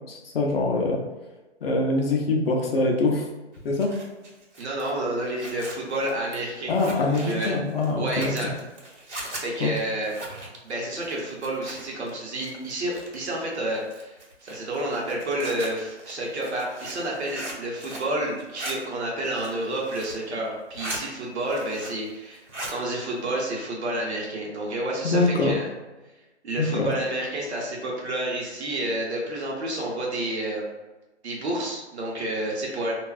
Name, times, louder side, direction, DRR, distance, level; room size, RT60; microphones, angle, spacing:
voice 1, 0.1-1.0 1.6-3.3 3.6-3.9 6.7-8.3 9.6-9.7 25.0-25.6 26.6-26.9, left 2 dB, 55° left, 0 dB, 0.6 m, -24 dB
Zipper (clothing), 3.5-12.1 12.4-13.4 13.8-18.1 18.4-18.7 19.2-20.2 20.6-21.0 21.4-22.1 22.3-22.8, right 1 dB, 85° right, 1.3 m, -39 dB
voice 2, 4.6-6.7 7.0-7.6 8.0-8.5 9.3-10.1 10.6-14.1 14.4-25.7 26.4-30.7 31.2-32.9, right 1 dB, 65° right, -2 dB, 1.0 m, -30 dB
2.4 x 2.4 x 2.4 m, 1.1 s
hypercardioid pair, 160°, 35 cm